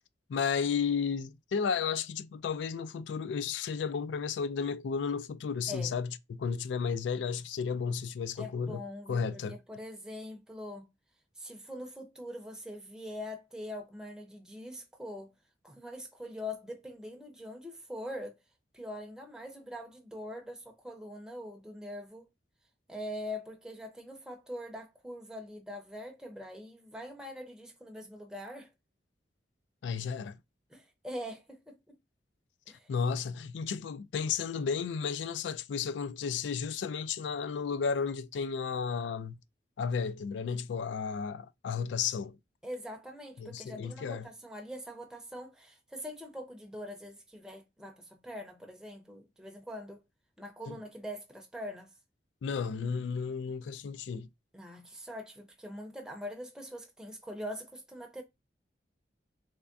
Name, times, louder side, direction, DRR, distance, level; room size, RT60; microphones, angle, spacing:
voice 1, 0.3-8.8 9.1-9.6 29.8-30.4 32.9-39.4 39.8-42.4 43.4-44.3 50.7-50.8 52.4-54.3, left 6 dB, 90° left, 0.3 m, -33 dB
voice 2, 8.4-10.9 11.4-15.3 15.6-18.4 18.7-22.3 22.9-28.7 30.7-31.8 32.7-32.9 42.6-50.0 50.4-51.9 54.5-58.2, left 1 dB, 5° right, 0.6 m, -43 dB
3.4 x 3.3 x 2.5 m
head